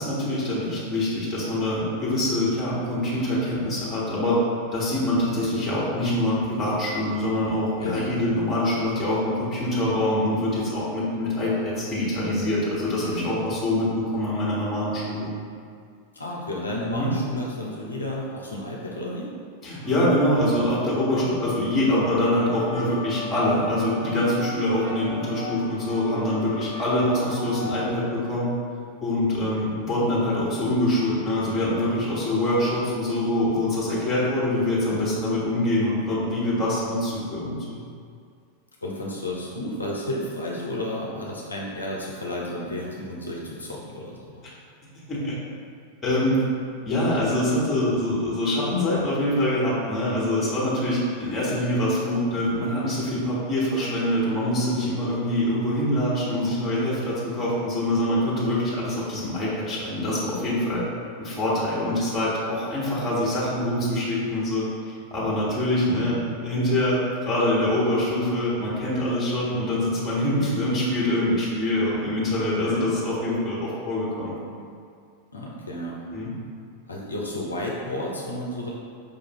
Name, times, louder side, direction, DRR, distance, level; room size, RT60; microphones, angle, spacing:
voice 1, 0.0-4.4 4.7-13.9 14.1-15.3 16.9-17.1 19.6-28.5 29.0-37.8 45.1-45.3 46.0-46.4 46.8-60.8 61.2-64.7 65.1-66.2 66.4-74.3 76.1-76.3, left 1 dB, 20° left, -7 dB, 1.3 m, -24 dB
voice 2, 7.8-8.1 13.0-13.4 16.1-19.3 21.1-21.4 38.8-44.4 65.8-66.2 72.6-72.9 75.3-76.0 76.9-78.7, left 1 dB, 80° left, -4 dB, 0.5 m, -32 dB
sound 1, 19.8-27.8, left 1 dB, 75° right, 0.8 m, -36 dB
5.1 x 2.5 x 3.0 m, 2.2 s
figure-of-eight pair, 90°, 0 cm